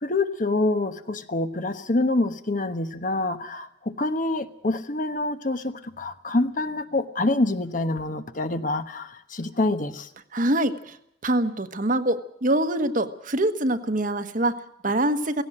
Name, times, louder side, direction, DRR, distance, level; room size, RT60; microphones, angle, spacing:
voice 1, 0.0-10.1, left 2 dB, 45° left, 1.2 m, -26 dB
voice 2, 10.3-11.0 11.2-15.4, right 1 dB, 45° right, 1.3 m, -24 dB
17.0 x 17.0 x 8.9 m
head